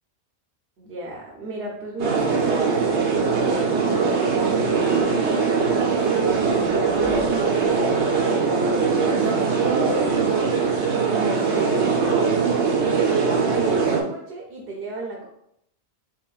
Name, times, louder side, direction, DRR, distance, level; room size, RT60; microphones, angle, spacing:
voice 1, 0.8-3.7 4.1-6.0 6.5-8.0 8.9-10.5 11.2-12.8 13.1-15.3, right 2 dB, 65° right, -1 dB, 0.9 m, -34 dB
sound 1, 2.0-14.0, right 5 dB, 85° right, 1.0 m, -21 dB
4.6 x 3.4 x 2.4 m, 0.74 s
omnidirectional pair, 1.1 m